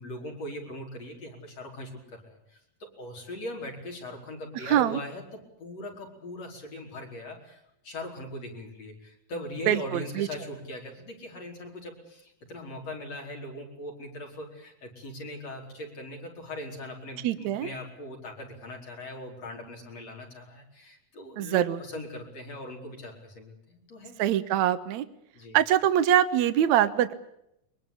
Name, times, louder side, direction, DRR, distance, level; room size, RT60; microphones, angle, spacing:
voice 1, 0.0-24.2 25.3-25.6, left 1 dB, 45° left, 1 dB, 5.7 m, -40 dB
voice 2, 4.7-5.0 9.7-10.3 17.2-17.7 21.4-21.8 24.2-25.1 25.5-27.1, right 11 dB, 65° right, 12 dB, 2.3 m, -24 dB
23.5 x 21.5 x 8.6 m, 0.79 s
omnidirectional pair, 4.0 m